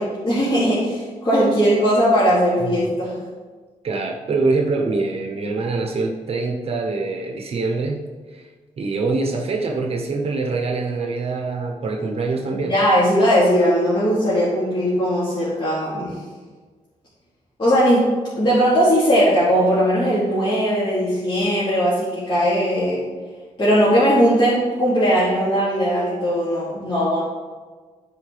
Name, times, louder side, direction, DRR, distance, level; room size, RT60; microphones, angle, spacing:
voice 1, 0.0-3.2 12.7-16.2 17.6-23.0 23.6-27.2, equal, 40° left, -11 dB, 2.5 m, -19 dB
voice 2, 3.8-8.5 8.8-12.8, right 3 dB, 50° right, 1 dB, 0.9 m, -24 dB
14.5 x 4.8 x 3.4 m, 1.5 s
wide cardioid pair, 150°, 13 cm